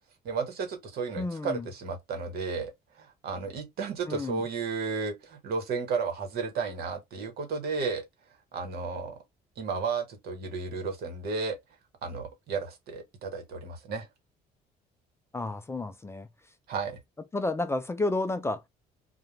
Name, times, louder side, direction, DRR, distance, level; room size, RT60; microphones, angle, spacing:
voice 1, 0.2-2.7 3.0-8.1 8.5-9.2 9.6-11.6 12.0-14.1 16.7-17.0, right 5 dB, 70° right, 1.0 m, -33 dB
voice 2, 1.2-1.7 4.1-4.4 15.3-16.3 17.3-18.7, left 2 dB, 15° left, 0.4 m, -31 dB
2.4 x 2.1 x 3.0 m
cardioid pair, 110°, 17 cm